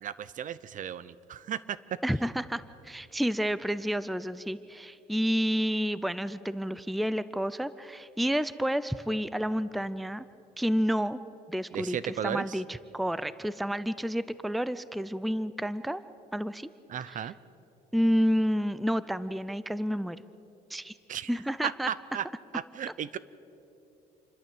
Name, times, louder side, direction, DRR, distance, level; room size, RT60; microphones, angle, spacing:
voice 1, 0.0-1.6 11.7-12.6 16.9-17.3 21.1-21.3 21.6-22.3 22.5-23.2, right 9 dB, 50° right, 18 dB, 0.7 m, -35 dB
voice 2, 2.0-10.2 10.6-11.2 11.5-12.0 12.2-16.0 16.3-16.7 17.1-17.2 17.9-20.2 20.7-20.9 21.3-21.9, equal, ahead, 16 dB, 0.5 m, -30 dB
28.0 x 12.5 x 8.0 m, 2.9 s
cardioid pair, 110°, 17 cm